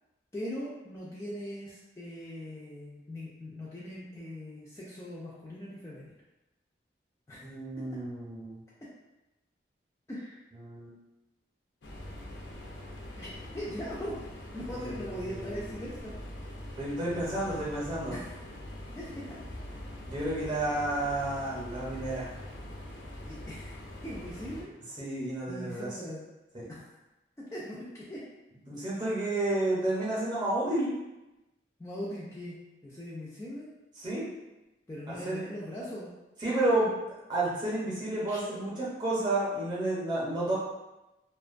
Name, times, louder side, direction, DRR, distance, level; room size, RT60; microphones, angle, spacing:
voice 1, 0.3-6.1 7.3-7.5 10.1-10.4 13.2-14.1 14.5-16.1 18.1-18.3 18.9-19.1 23.2-23.7 24.0-24.7 25.5-26.3 26.7-26.9 27.5-28.2 31.8-32.6 32.8-33.7 34.9-36.1 38.3-38.4, equal, 15° left, -7 dB, 0.3 m, -40 dB
voice 2, 7.4-8.6 10.6-10.9 14.9-15.7 16.8-18.2 20.1-22.3 25.0-26.0 26.5-26.6 28.7-30.9 34.0-34.3 35.1-35.5 36.4-36.9 37.3-40.5, right 1 dB, 25° right, -6 dB, 0.6 m, -31 dB
sound 1, 11.8-24.6, left 1 dB, 85° left, 0.5 m, -43 dB
2.5 x 2.2 x 2.4 m, 1.0 s
head